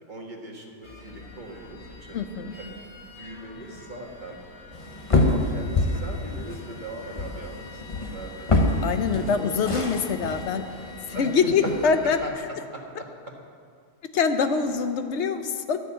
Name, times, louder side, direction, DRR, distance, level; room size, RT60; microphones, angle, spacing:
voice 1, 0.0-2.2 2.6-2.7 3.1-4.4 5.1-8.8 9.2-9.5 9.8-9.9 11.1-11.9 12.2-13.1, right 2 dB, 30° right, 0 dB, 1.5 m, -39 dB
sound 1, 0.8-12.3, left 3 dB, 75° left, 2.6 m, -45 dB
voice 2, 2.1-2.5 8.8-10.7 11.1-12.2 14.1-15.8, left 5 dB, 55° left, 8 dB, 0.8 m, -24 dB
sound 2, 4.7-11.9, left 2 dB, 25° left, 0.8 m, -27 dB
12.0 x 6.6 x 8.6 m, 2.2 s
omnidirectional pair, 1.7 m